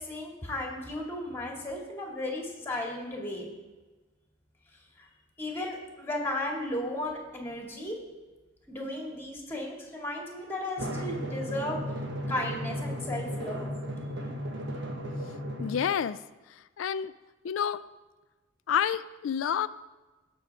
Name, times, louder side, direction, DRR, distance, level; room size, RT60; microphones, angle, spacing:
voice 1, 0.0-3.5 5.0-5.1 5.4-8.0 8.7-11.8 12.3-13.7, left 1 dB, 10° left, -1 dB, 2.1 m, -35 dB
Drum, 10.8-15.8, equal, 60° right, 1.3 m, -35 dB
voice 2, 15.6-16.2 16.8-17.1 17.4-17.8 18.7-19.7, left 8 dB, 80° left, 14 dB, 0.4 m, -28 dB
18.5 x 6.2 x 3.5 m, 1.2 s
head